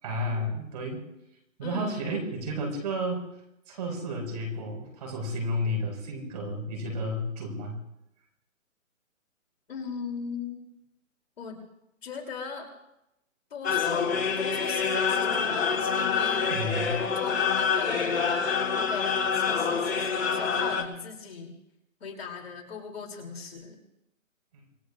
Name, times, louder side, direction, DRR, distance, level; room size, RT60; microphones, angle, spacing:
voice 1, 0.0-1.0 1.6-3.2 3.7-7.8 16.5-17.0, equal, 30° right, 1 dB, 5.2 m, -32 dB
voice 2, 1.6-2.2 9.7-10.6 11.4-11.6 12.0-12.7 13.5-16.5 16.9-18.1 18.7-21.5 22.0-23.8, left 5 dB, 50° left, 1 dB, 3.2 m, -39 dB
sound 1, 13.6-20.8, left 6 dB, 80° left, 3.9 m, -26 dB
27.0 x 21.5 x 2.5 m, 0.86 s
hypercardioid pair, 170°, 40 cm